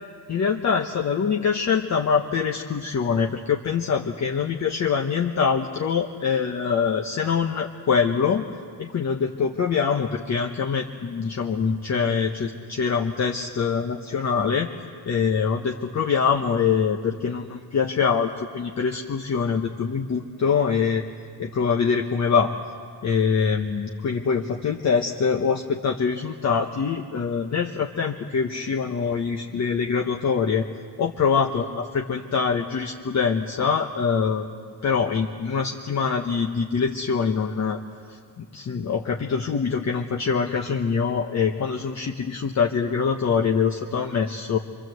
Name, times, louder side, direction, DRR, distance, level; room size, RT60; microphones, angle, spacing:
voice 1, 0.3-8.4 8.8-14.7 15.0-21.0 21.4-22.5 23.0-30.7 31.0-37.8 38.1-44.6, left 6 dB, 45° left, 2 dB, 1.3 m, -24 dB
25.5 x 24.5 x 8.0 m, 2.1 s
cardioid pair, 115°, 39 cm